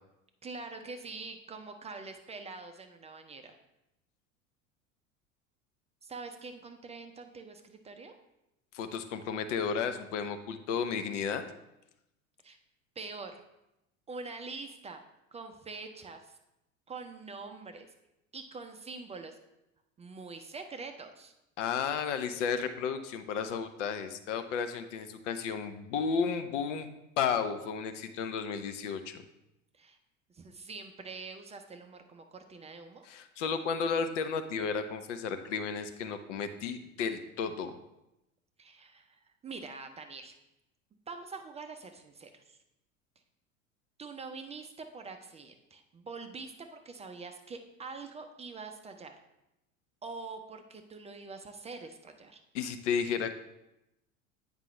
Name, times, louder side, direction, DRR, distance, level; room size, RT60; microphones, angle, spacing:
voice 1, 0.4-3.6 6.0-8.1 12.4-12.6 13.0-13.4 14.1-15.0 15.3-16.4 16.9-17.9 18.3-19.4 20.0-21.3 29.7-30.0 30.3-33.1 38.6-40.3 41.1-42.6 44.0-49.2 50.0-52.4, right 4 dB, 15° right, 6 dB, 0.5 m, -44 dB
voice 2, 8.7-11.4 21.6-26.9 27.2-29.2 33.0-37.7 52.5-53.3, left 6 dB, 60° left, 9 dB, 0.8 m, -33 dB
9.1 x 5.1 x 3.2 m, 0.90 s
figure-of-eight pair, 75°, 40 cm